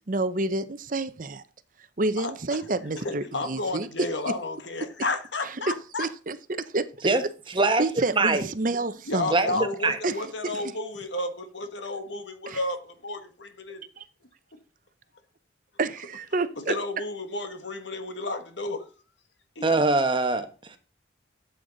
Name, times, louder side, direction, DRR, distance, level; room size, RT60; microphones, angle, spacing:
voice 1, 0.1-1.4 2.0-3.9 6.0-6.4 6.7-6.9 7.8-9.6 10.0-10.2 10.4-10.6 12.5-12.6 14.0-14.1 15.8-16.7, right 2 dB, 45° right, 0.7 m, -28 dB
voice 2, 2.2-2.7 2.9-6.1 9.1-13.9 16.7-18.9 19.5-19.8, left 2 dB, 75° left, 1.5 m, -32 dB
voice 3, 7.5-7.8 8.1-8.4 9.3-9.5 9.8-10.0 19.6-20.5, right 3 dB, 25° right, 1.2 m, -22 dB
12.5 x 8.1 x 4.0 m
head